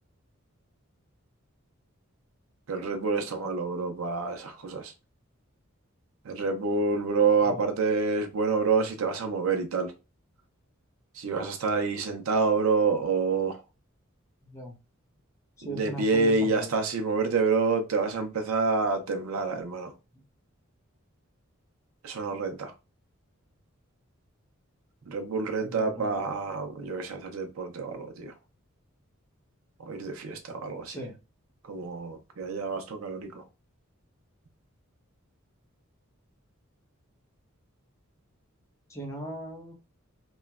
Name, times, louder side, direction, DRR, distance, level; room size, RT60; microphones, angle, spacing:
voice 1, 2.7-4.9 6.2-9.9 11.1-13.6 15.6-19.9 22.0-22.7 25.1-28.3 29.8-31.0 31.7-33.4, right 4 dB, 85° right, 0.5 m, -28 dB
voice 2, 14.4-14.7 15.6-16.7 20.1-20.2 25.6-26.2 30.9-31.2 38.9-39.7, right 1 dB, 15° left, 0.8 m, -38 dB
3.0 x 2.1 x 2.3 m
head